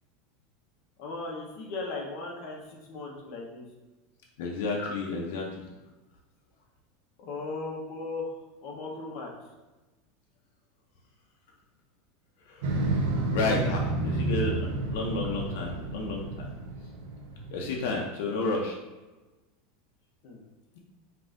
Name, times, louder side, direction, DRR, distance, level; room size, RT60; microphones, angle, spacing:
voice 1, 1.0-3.7 7.2-8.3 8.6-9.3 20.2-20.4, left 3 dB, 45° left, -2 dB, 1.0 m, -37 dB
voice 2, 4.4-5.7 8.9-9.1 12.5-12.6 13.3-16.5 17.5-18.7, left 3 dB, 70° left, -1 dB, 0.6 m, -31 dB
Motorcycle, 12.6-17.8, right 2 dB, 75° right, 0.6 m, -30 dB
5.3 x 2.6 x 2.6 m, 1.1 s
supercardioid pair, 160°, 0 cm